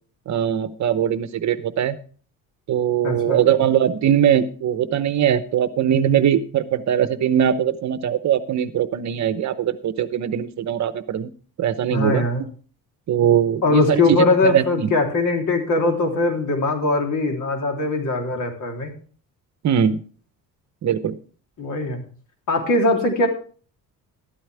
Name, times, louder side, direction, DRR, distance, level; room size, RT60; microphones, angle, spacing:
voice 1, 0.3-2.0 2.7-11.3 11.6-12.2 13.1-14.9 19.6-20.0 20.8-21.2, right 9 dB, 55° right, 13 dB, 0.9 m, -21 dB
voice 2, 3.0-3.4 11.9-12.4 13.6-18.9 21.6-22.0 22.5-23.3, left 3 dB, 60° left, 2 dB, 3.4 m, -21 dB
13.0 x 13.0 x 3.4 m, 0.42 s
cardioid pair, 130°, 35 cm